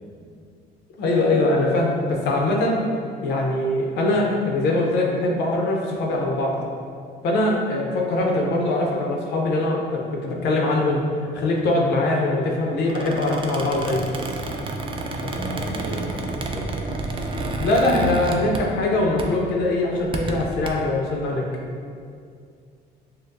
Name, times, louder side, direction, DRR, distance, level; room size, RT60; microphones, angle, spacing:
voice 1, 1.0-2.8 3.2-6.6 7.2-11.0 11.3-14.1 17.6-21.5, left 2 dB, 80° left, -1 dB, 0.7 m, -22 dB
Squeak, 12.8-18.9 19.2-19.5 19.9-20.7, right 2 dB, 30° right, 0.4 m, -30 dB
voice 2, 15.2-16.7, right 1 dB, 55° right, -3 dB, 1.0 m, -33 dB
6.4 x 2.2 x 2.6 m, 2.3 s
cardioid pair, 110°, 17 cm